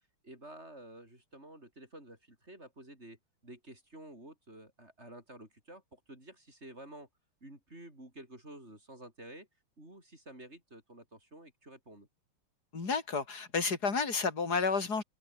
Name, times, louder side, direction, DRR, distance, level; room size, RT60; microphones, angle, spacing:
voice 1, 0.2-7.1 7.4-9.5 9.8-12.1, right 1 dB, 30° right, 7.3 m, -51 dB
voice 2, 12.7-15.0, left 4 dB, 45° left, 4.1 m, -31 dB
open air
omnidirectional pair, 2.4 m